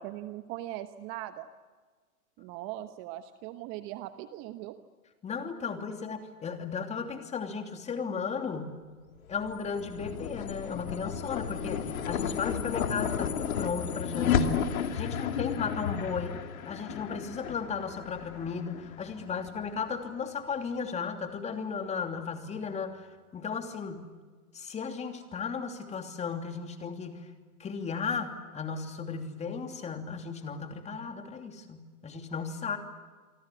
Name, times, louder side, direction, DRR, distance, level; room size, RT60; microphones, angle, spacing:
voice 1, 0.0-1.5 2.4-4.8, right 14 dB, 25° right, 10 dB, 1.1 m, -40 dB
voice 2, 5.2-8.8 9.3-14.6 14.9-16.3 16.6-23.0 23.3-24.1 24.5-27.2 27.6-32.8, left 5 dB, 15° left, 6 dB, 2.9 m, -35 dB
sound 1, 9.3-19.8, left 7 dB, 60° left, 2.9 m, -33 dB
27.5 x 24.5 x 8.3 m, 1.5 s
hypercardioid pair, 125°, 46 cm